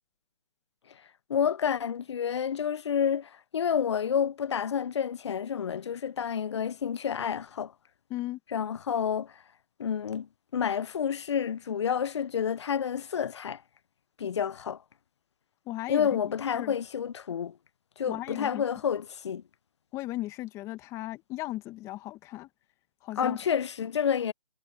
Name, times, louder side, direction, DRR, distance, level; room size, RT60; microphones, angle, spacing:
voice 1, 1.3-7.7 8.5-9.4 9.8-10.3 10.5-13.6 14.2-14.8 15.9-17.6 18.0-19.4 23.2-24.3, left 8 dB, 45° left, 0.6 m, -29 dB
voice 2, 15.6-16.8 18.1-18.6 19.9-22.5 23.0-23.4, left 17 dB, 15° left, 1.7 m, -36 dB
figure-of-eight pair, 150°, 20 cm